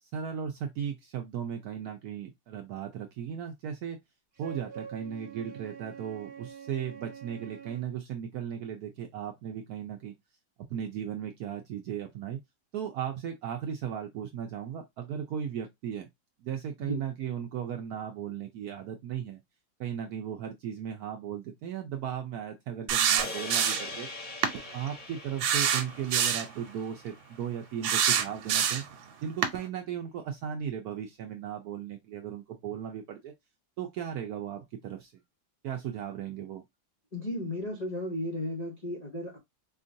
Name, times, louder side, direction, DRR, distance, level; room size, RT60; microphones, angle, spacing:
voice 1, 0.0-4.0 4.4-10.1 10.6-12.4 12.7-16.1 16.4-19.4 19.8-24.1 24.7-28.8 29.2-33.3 33.8-35.1 35.6-36.6, right 9 dB, 75° right, 0.8 m, -36 dB
Wind instrument woodwind instrument, 4.4-7.9, right 7 dB, 45° right, 0.8 m, -46 dB
sound 1, 22.9-24.0 24.4-24.6 25.4-26.5 27.8-28.9 29.4-29.6, right 8 dB, 90° right, 1.4 m, -26 dB
sound 2, 23.2-27.6, left 3 dB, 30° left, 0.7 m, -42 dB
voice 2, 37.1-39.4, left 1 dB, 75° left, 0.3 m, -34 dB
4.4 x 2.4 x 2.6 m
omnidirectional pair, 2.1 m